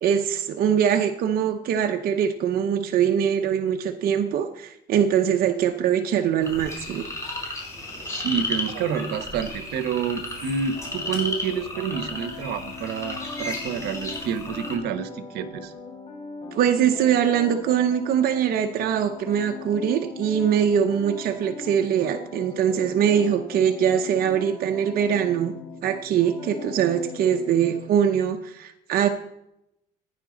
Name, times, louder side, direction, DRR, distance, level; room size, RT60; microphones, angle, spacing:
voice 1, 0.0-7.1 16.5-25.5 25.8-29.1, right 8 dB, 60° right, 5 dB, 0.8 m, -22 dB
sound 1, 6.4-14.8, left 2 dB, 20° left, 4.0 m, -33 dB
voice 2, 8.1-15.7, right 7 dB, 80° right, 10 dB, 1.1 m, -28 dB
sound 2, 10.7-27.8, left 4 dB, 40° left, 4.7 m, -40 dB
15.5 x 9.7 x 3.9 m, 0.83 s
cardioid pair, 110°, 17 cm